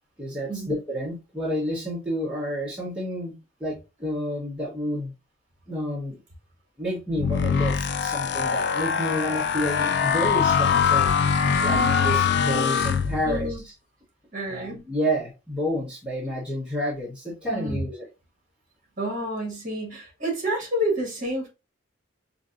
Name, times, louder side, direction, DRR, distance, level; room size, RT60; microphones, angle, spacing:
voice 1, 0.2-5.1 5.7-6.2 6.8-13.7 14.5-18.1, equal, 5° right, 1.0 m, -30 dB
sound 1, 7.1-13.6, left 6 dB, 55° left, 0.3 m, -23 dB
voice 2, 11.5-12.4 13.2-13.6 14.3-14.8 17.5-17.8 19.0-21.5, equal, 40° right, 1.6 m, -29 dB
4.9 x 2.6 x 2.5 m
head